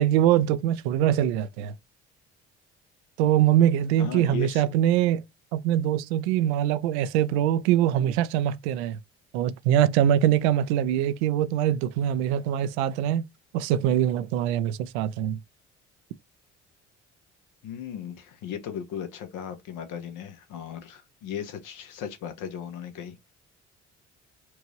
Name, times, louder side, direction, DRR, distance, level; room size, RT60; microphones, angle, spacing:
voice 1, 0.0-1.7 3.2-5.2 5.5-9.0 9.3-13.2 13.5-15.4, right 11 dB, 80° right, 0.5 m, -23 dB
voice 2, 4.0-4.6 17.6-23.2, left 8 dB, 65° left, 1.3 m, -36 dB
4.5 x 2.6 x 2.9 m
hypercardioid pair, 55°, 33 cm